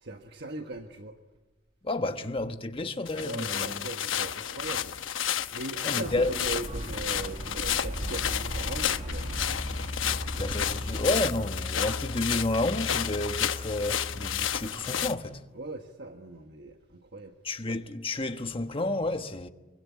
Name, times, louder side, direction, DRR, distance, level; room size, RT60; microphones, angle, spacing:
voice 1, 0.0-1.2 3.1-4.9 5.5-9.3 15.5-17.3, right 2 dB, 60° right, 1.4 m, -39 dB
voice 2, 1.8-3.9 5.8-6.3 10.1-15.4 17.4-19.5, left 2 dB, 30° left, 1.3 m, -31 dB
sound 1, 3.1-15.1, left 9 dB, 90° left, 1.0 m, -32 dB
sound 2, 6.0-11.2, right 1 dB, 30° right, 1.1 m, -38 dB
sound 3, 6.3-6.5 7.4-15.4, left 1 dB, 55° left, 1.6 m, -38 dB
25.5 x 23.5 x 9.7 m
head